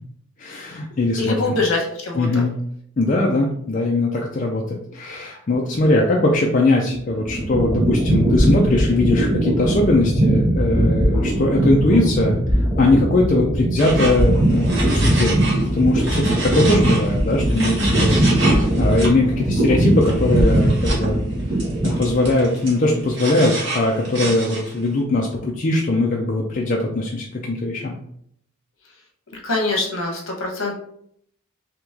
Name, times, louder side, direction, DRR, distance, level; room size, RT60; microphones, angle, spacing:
voice 1, 0.4-1.5 2.2-2.5 3.0-21.2 21.8-28.0, left 2 dB, 35° left, -2 dB, 0.4 m, -20 dB
voice 2, 1.2-2.4 29.4-30.8, left 2 dB, 65° left, 1 dB, 1.0 m, -23 dB
sound 1, 6.9-22.4, right 1 dB, 30° right, 1.1 m, -20 dB
sound 2, 13.8-15.7 15.9-19.1 20.0-21.1 21.6-24.8, right 2 dB, 60° right, 1.1 m, -28 dB
3.0 x 2.9 x 3.5 m, 0.67 s
head